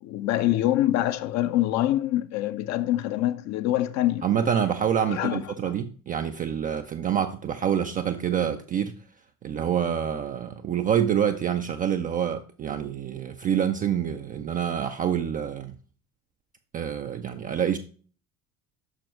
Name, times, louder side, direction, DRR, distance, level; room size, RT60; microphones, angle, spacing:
voice 1, 0.0-4.3 5.1-5.7, left 14 dB, 35° left, 0.5 m, -25 dB
voice 2, 4.2-9.0 9.4-15.7 16.7-17.8, right 8 dB, 20° right, 0.3 m, -27 dB
6.2 x 6.0 x 3.1 m
figure-of-eight pair, 60°, 48 cm